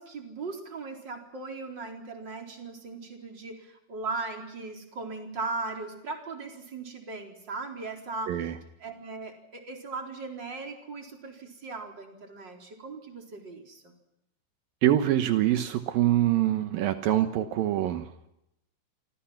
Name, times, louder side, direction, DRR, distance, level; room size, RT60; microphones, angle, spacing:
voice 1, 0.0-8.5 8.8-13.9, right 3 dB, 25° right, 3 dB, 4.2 m, -38 dB
voice 2, 14.8-18.1, right 12 dB, 75° right, 9 dB, 2.1 m, -24 dB
29.0 x 25.5 x 5.9 m, 0.82 s
omnidirectional pair, 5.7 m